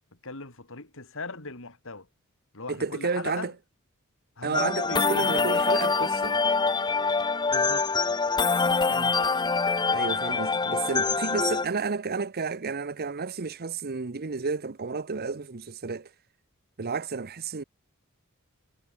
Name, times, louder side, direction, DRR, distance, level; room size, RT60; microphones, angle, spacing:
voice 1, 0.2-2.1 2.5-3.5 4.4-5.5 7.5-7.9, left 3 dB, 65° left, 3.9 m, -39 dB
voice 2, 2.7-3.5 4.4-6.4 8.8-9.2 9.9-16.1 16.8-17.6, right 4 dB, 45° right, 0.8 m, -31 dB
sound 1, 4.5-11.7, left 4 dB, 20° left, 0.6 m, -25 dB
head